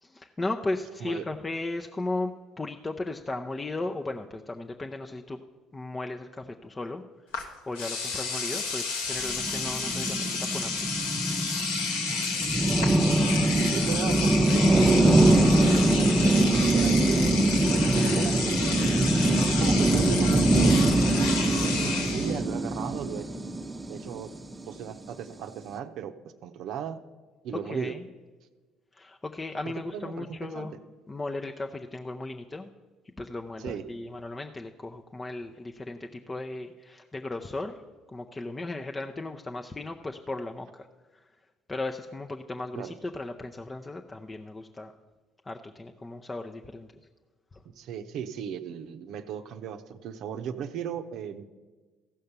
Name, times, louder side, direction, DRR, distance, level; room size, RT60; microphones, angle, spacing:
voice 1, 0.0-5.4 5.7-10.8 27.5-28.1 28.9-30.7 31.1-32.7 33.2-37.8 38.1-40.9 41.1-41.3 41.7-44.9 45.4-46.9 47.5-47.6, left 2 dB, 20° left, 4 dB, 0.6 m, -36 dB
Engine / Domestic sounds home sounds, 7.3-7.4 7.7-22.4, left 4 dB, 85° left, 1.2 m, -31 dB
sound 1, 9.2-24.7, right 2 dB, 20° right, 0.8 m, -23 dB
voice 2, 13.5-15.6 15.9-17.3 17.7-18.9 19.6-20.8 21.6-23.3 23.9-24.3 24.7-26.1 26.4-27.0 27.4-27.9 29.9-30.7 33.6-33.8 42.8-42.9 47.6-51.4, right 8 dB, 65° right, 9 dB, 0.7 m, -37 dB
15.0 x 5.6 x 6.7 m, 1.3 s
hypercardioid pair, 60°, 0 cm